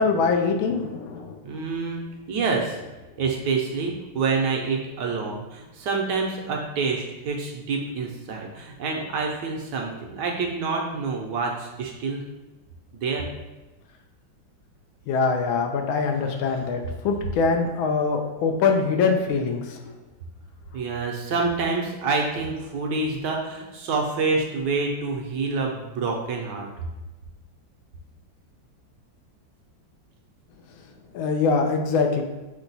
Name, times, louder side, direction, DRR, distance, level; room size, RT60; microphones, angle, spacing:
voice 1, 0.0-1.4 15.1-19.9 31.1-32.2, left 4 dB, 85° left, 4 dB, 1.4 m, -23 dB
voice 2, 1.4-2.8 3.2-12.2 12.9-13.3 16.4-16.7 20.7-26.7, right 4 dB, 70° right, 0 dB, 1.2 m, -27 dB
5.8 x 2.3 x 4.0 m, 1.1 s
omnidirectional pair, 2.1 m